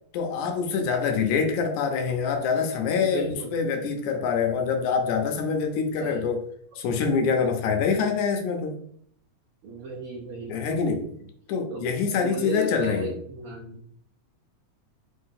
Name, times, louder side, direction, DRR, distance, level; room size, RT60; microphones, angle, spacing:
voice 1, 0.1-6.4 6.8-8.8 10.5-11.1 11.5-13.2, left 5 dB, 85° left, 5 dB, 2.1 m, -25 dB
voice 2, 3.0-3.6 6.0-6.3 9.6-11.1 11.7-11.8 12.2-13.8, right 2 dB, 85° right, -1 dB, 1.2 m, -35 dB
4.9 x 2.7 x 3.6 m, 0.65 s
omnidirectional pair, 3.4 m